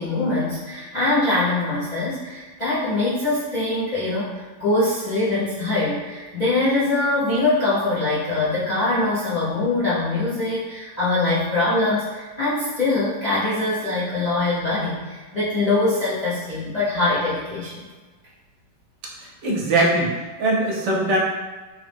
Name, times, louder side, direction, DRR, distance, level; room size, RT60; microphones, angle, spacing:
voice 1, 0.0-4.3 4.6-17.7, left 2 dB, 75° left, -11 dB, 0.3 m, -23 dB
voice 2, 19.2-20.1 20.4-21.2, right 2 dB, 70° right, -3 dB, 1.2 m, -21 dB
3.5 x 2.0 x 3.3 m, 1.3 s
omnidirectional pair, 2.1 m